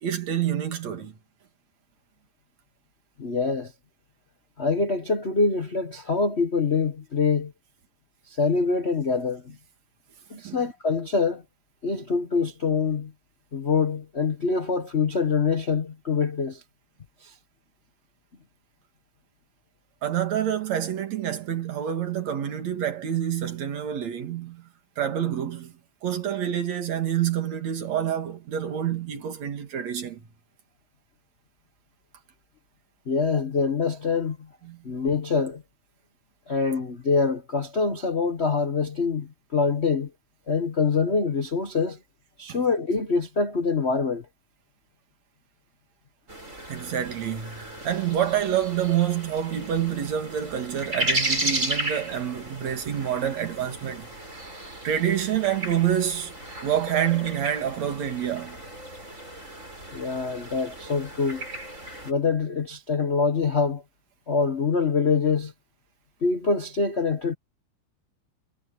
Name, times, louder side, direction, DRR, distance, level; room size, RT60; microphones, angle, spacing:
voice 1, 0.0-1.2 10.4-10.6 20.0-24.7 25.0-25.7 26.0-30.3 34.7-34.8 42.5-42.6 46.7-54.1 54.8-56.3 56.6-58.6, right 10 dB, 70° right, 3.3 m, -27 dB
voice 2, 3.2-3.7 4.6-7.5 8.3-9.6 10.3-11.4 11.8-13.1 13.5-16.6 17.2-17.3 33.1-34.4 34.8-35.6 36.5-40.1 40.5-42.0 42.4-44.2 59.9-61.4 62.0-63.8 64.3-65.5 66.2-67.3, left 4 dB, 60° left, 0.6 m, -25 dB
sound 1, 46.3-62.1, right 1 dB, 25° right, 8.3 m, -34 dB
omnidirectional pair, 3.3 m